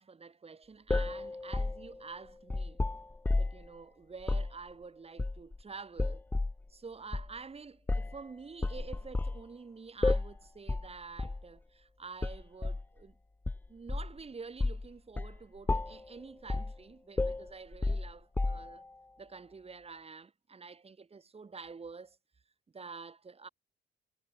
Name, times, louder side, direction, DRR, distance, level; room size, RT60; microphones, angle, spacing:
voice 1, 0.0-2.8 3.4-6.2 6.7-13.1 13.7-18.8 19.2-22.2 22.7-23.5, right 4 dB, 30° right, 2.5 m, -48 dB
sound 1, 0.9-3.7 4.2-4.5 5.2-5.6 6.0-6.6 7.1-7.3 7.9-8.2 8.6-9.4 10.0-10.4 10.7-10.9 11.2-11.4 12.2-12.9 13.5-14.2 14.6-14.9 15.2-15.4 15.7-16.1 16.5-16.8 17.2-18.8, left 2 dB, 10° left, 0.3 m, -32 dB
cardioid pair, 90°, 20 cm